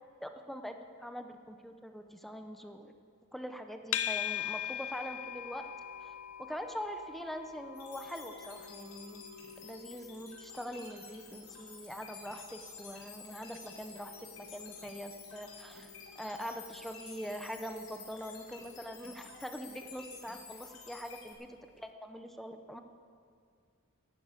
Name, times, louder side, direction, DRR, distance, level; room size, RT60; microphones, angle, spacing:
voice 1, 0.2-2.9 3.3-5.7 6.0-6.1 6.4-9.2 9.6-15.9 16.2-22.8, equal, ahead, 6 dB, 0.6 m, -43 dB
sound 1, 3.9-21.1, left 10 dB, 90° left, 0.5 m, -44 dB
sound 2, 7.7-21.3, left 5 dB, 70° left, 4.1 m, -51 dB
11.5 x 10.0 x 8.3 m, 2.2 s
head